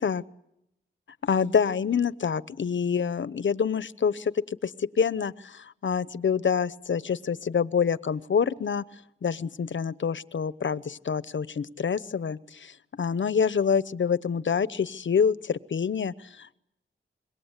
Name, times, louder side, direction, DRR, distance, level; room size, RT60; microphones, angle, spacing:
voice 1, 1.2-4.3 4.6-8.8 9.2-16.6, left 6 dB, 65° left, 17 dB, 0.9 m, -27 dB
26.5 x 22.0 x 8.2 m, 0.80 s
cardioid pair, 60°, 21 cm